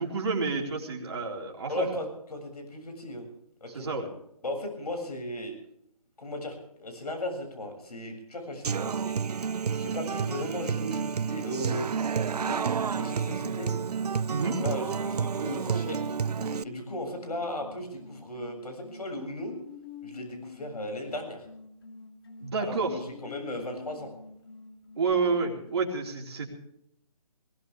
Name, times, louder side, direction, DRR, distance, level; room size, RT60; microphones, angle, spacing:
voice 1, 0.0-1.9 3.7-4.1 14.3-14.6 22.4-23.0 25.0-26.5, right 4 dB, 45° right, 0 dB, 4.0 m, -29 dB
voice 2, 1.7-3.3 3.6-3.9 4.4-5.5 6.2-9.2 9.7-13.7 14.6-16.2 16.6-19.5 20.0-21.5 22.6-24.1, left 1 dB, 80° left, 4 dB, 7.2 m, -36 dB
Human voice / Acoustic guitar, 8.6-16.6, right 6 dB, 85° right, 0.6 m, -30 dB
sound 1, 13.7-25.8, left 5 dB, 40° left, 2.4 m, -47 dB
20.5 x 19.0 x 3.5 m, 0.77 s
hypercardioid pair, 170°, 20 cm